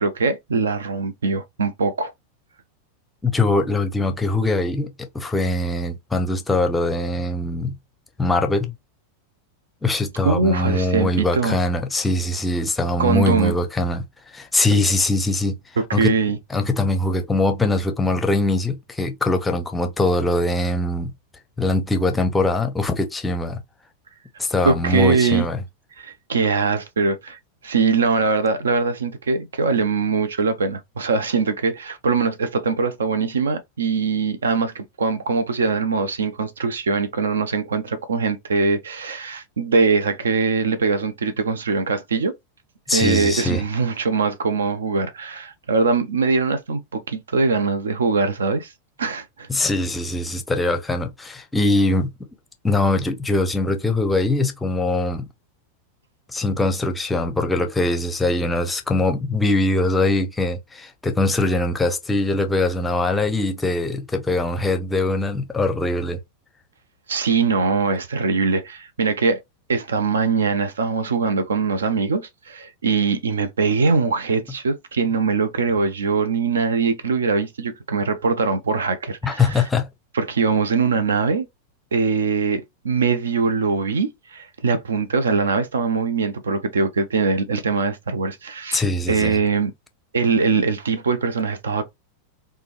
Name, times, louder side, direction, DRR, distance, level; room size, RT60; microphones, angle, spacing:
voice 1, 0.0-2.1 10.2-11.6 13.0-13.5 15.8-16.4 24.6-25.5 26.0-42.3 42.9-48.7 49.0-49.5 67.1-69.4 69.7-79.7 80.1-81.5 81.9-89.7 90.1-91.8, right 4 dB, 70° right, 0.5 m, -22 dB
voice 2, 3.2-7.8 8.2-8.7 9.8-14.1 14.3-15.6 15.9-16.1 16.5-21.1 21.6-23.6 24.4-25.6 42.9-43.6 49.5-52.1 52.6-55.3 56.3-66.2 79.2-79.9 88.7-89.4, left 2 dB, 10° left, 0.6 m, -22 dB
3.3 x 2.2 x 3.1 m
figure-of-eight pair, 90°, 0 cm